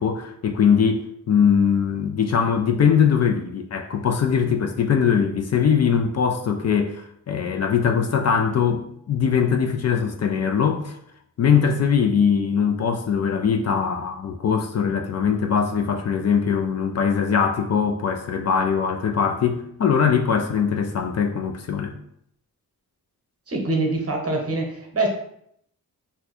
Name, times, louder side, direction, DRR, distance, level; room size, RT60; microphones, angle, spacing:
voice 1, 0.0-11.0 11.4-21.9, left 7 dB, 50° left, 5 dB, 0.4 m, -21 dB
voice 2, 23.5-25.1, right 2 dB, 40° right, 2 dB, 0.9 m, -24 dB
2.6 x 2.3 x 4.1 m, 0.71 s
cardioid pair, 75°, 34 cm